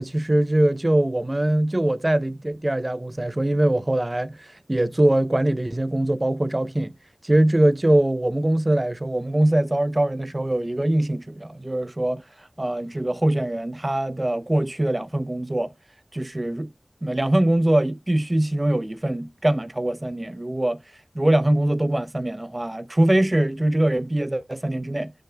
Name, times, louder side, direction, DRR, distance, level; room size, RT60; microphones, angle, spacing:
voice 1, 0.0-6.9 7.2-12.2 12.6-15.7 16.1-16.7 17.0-20.8 21.1-25.1, right 1 dB, 30° right, 0.6 m, -22 dB
12.5 x 5.7 x 2.2 m
wide cardioid pair, 55°, 0 cm